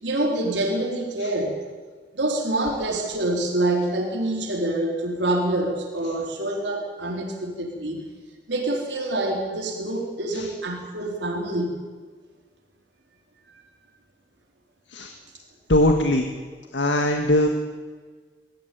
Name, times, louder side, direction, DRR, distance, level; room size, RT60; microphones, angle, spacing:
voice 1, 0.0-1.6 2.1-8.0 8.5-11.8, right 1 dB, 80° right, 0 dB, 4.0 m, -26 dB
voice 2, 15.7-16.3 16.7-17.5, left 1 dB, 85° left, 4 dB, 1.8 m, -20 dB
21.5 x 15.0 x 9.5 m, 1.5 s
head